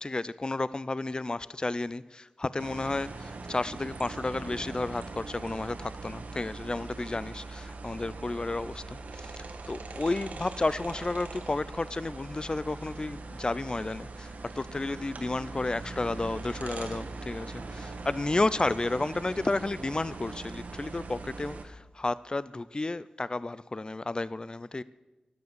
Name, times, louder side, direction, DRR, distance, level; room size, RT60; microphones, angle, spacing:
voice 1, 0.0-24.8, left 2 dB, 35° left, 18 dB, 0.4 m, -32 dB
sound 1, 2.6-21.6, right 3 dB, 75° right, 1.3 m, -41 dB
11.5 x 9.6 x 7.9 m, 1.1 s
cardioid pair, 50°, 3 cm